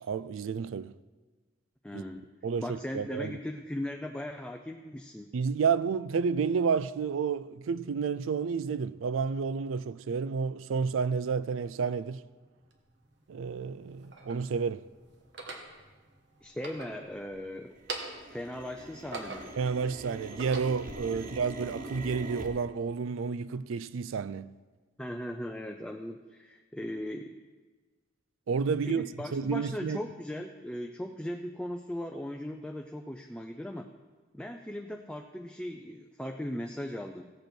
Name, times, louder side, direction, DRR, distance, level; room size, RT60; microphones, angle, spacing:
voice 1, 0.0-0.9 1.9-2.0 2.4-3.3 5.3-12.2 13.3-14.8 19.6-24.5 28.5-29.0 29.3-30.0, right 5 dB, 80° right, 0.4 m, -30 dB
voice 2, 1.8-2.3 2.6-5.4 16.4-17.8 18.3-19.5 21.1-21.3 25.0-27.4 28.9-33.9 34.3-37.3, left 1 dB, 5° left, 0.4 m, -38 dB
sound 1, 11.7-11.8 12.3-12.5 13.1-13.4 13.9-14.0 14.2-14.8 15.0-17.4 17.6-22.5, right 2 dB, 45° right, 1.0 m, -44 dB
sound 2, 12.7-12.8 13.6-14.5 15.2-15.7 16.5-17.4 17.7-18.3 18.8-19.7 20.2-20.9, right 3 dB, 60° right, 1.3 m, -41 dB
15.5 x 7.9 x 4.4 m
head